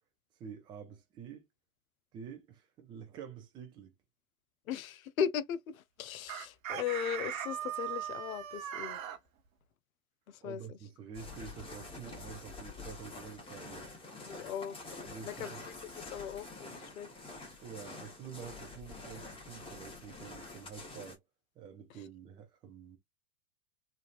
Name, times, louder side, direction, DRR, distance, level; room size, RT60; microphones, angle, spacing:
voice 1, 0.4-1.5 2.1-3.9 10.4-13.9 15.0-15.6 17.6-21.2 21.6-23.0, right 7 dB, 10° right, 0.4 m, -48 dB
voice 2, 4.7-9.0 10.3-10.8 14.2-14.8 15.2-17.1 21.9-22.0, left 8 dB, 65° left, 0.6 m, -38 dB
Chicken rooster, 6.3-9.2, right 10 dB, 60° right, 0.9 m, -39 dB
sound 1, 11.1-21.2, left 3 dB, 10° left, 1.0 m, -47 dB
3.2 x 2.4 x 2.4 m
figure-of-eight pair, 95°, 46 cm